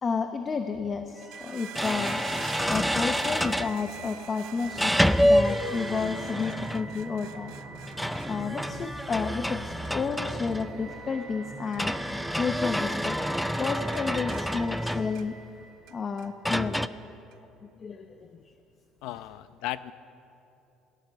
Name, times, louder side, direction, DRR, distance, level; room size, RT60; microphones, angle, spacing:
voice 1, 0.0-7.5 8.3-12.0 12.4-13.2 13.6-15.3 15.9-16.9 17.8-18.4, left 5 dB, 25° left, 7 dB, 0.8 m, -31 dB
sound 1, 0.8-0.9 1.7-3.8 4.8-7.0 7.9-10.9 11.8-15.4 16.4-16.9, equal, ahead, 0.4 m, -28 dB
sound 2, 1.1-16.3, right 3 dB, 25° right, 5.6 m, -43 dB
sound 3, 1.1-12.5 12.7-13.3 13.6-15.5 15.9-16.6 17.3-17.4, right 14 dB, 75° right, 0.7 m, -48 dB
voice 2, 19.0-19.9, left 15 dB, 75° left, 15 dB, 0.7 m, -35 dB
27.0 x 18.5 x 6.9 m, 2.9 s
cardioid pair, 160°, 0 cm